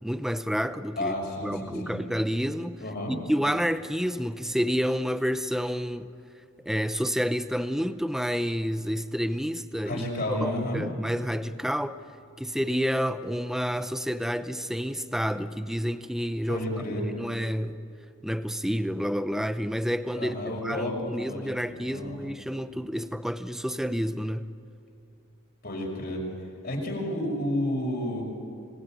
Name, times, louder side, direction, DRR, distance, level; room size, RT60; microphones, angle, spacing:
voice 1, 0.0-1.2 1.4-2.8 3.1-6.1 6.6-12.0 12.4-17.8 18.2-24.5, equal, ahead, 11 dB, 0.7 m, -29 dB
voice 2, 1.0-2.0 2.8-3.1 9.8-10.8 16.5-17.1 20.2-22.2 25.6-26.2 26.6-28.2, left 1 dB, 45° left, -1 dB, 6.2 m, -31 dB
26.0 x 20.0 x 9.3 m, 2.7 s
head